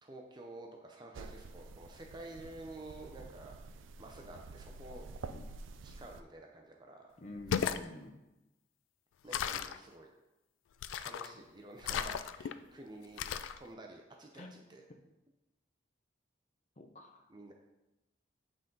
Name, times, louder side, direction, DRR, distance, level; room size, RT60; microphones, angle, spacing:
voice 1, 0.0-5.1 5.8-7.1 9.2-10.1 11.0-13.3 13.6-14.8 17.3-17.5, right 2 dB, 25° right, 1 dB, 0.5 m, -50 dB
sound 1, 1.1-6.2, right 3 dB, 85° right, 0.4 m, -49 dB
voice 2, 7.2-8.2 11.9-12.0 14.3-14.6 16.8-17.3, left 1 dB, 35° left, 3 dB, 0.6 m, -49 dB
sound 2, 7.3-7.9 9.3-9.8 10.8-11.3 11.8-12.5 13.2-13.6, left 8 dB, 85° left, 0.3 m, -35 dB
8.0 x 3.8 x 3.8 m, 1.0 s
head